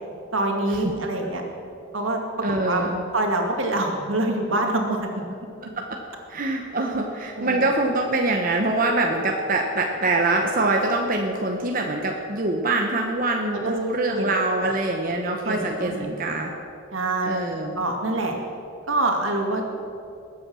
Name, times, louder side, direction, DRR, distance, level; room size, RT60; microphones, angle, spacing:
voice 1, 0.3-1.4 1.9-2.2 2.5-5.1 7.4-7.6 13.5-13.8 14.1-14.3 14.6-14.7 15.4-16.4 16.9-17.5 17.8-18.3 18.9-19.7, right 2 dB, 80° right, 2 dB, 2.2 m, -25 dB
voice 2, 2.4-3.0 5.8-5.9 6.3-16.5 17.3-17.8, right 2 dB, 45° right, 2 dB, 1.0 m, -24 dB
20.5 x 8.6 x 6.3 m, 2.6 s
head